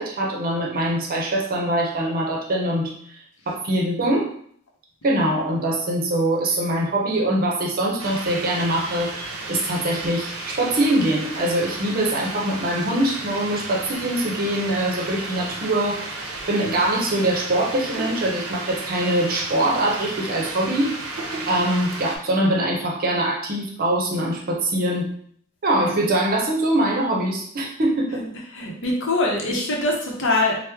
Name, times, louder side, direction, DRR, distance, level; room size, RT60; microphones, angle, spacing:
voice 1, 0.0-3.2 3.5-4.3 5.0-9.1 9.5-16.1 16.5-21.0 21.5-25.1 25.6-28.2, right 1 dB, 45° right, -1 dB, 0.7 m, -23 dB
sound 1, 8.0-22.2, right 2 dB, 90° right, 0.6 m, -33 dB
voice 2, 28.2-30.6, left 2 dB, 60° left, -1 dB, 0.8 m, -23 dB
3.0 x 2.1 x 3.4 m, 0.62 s
head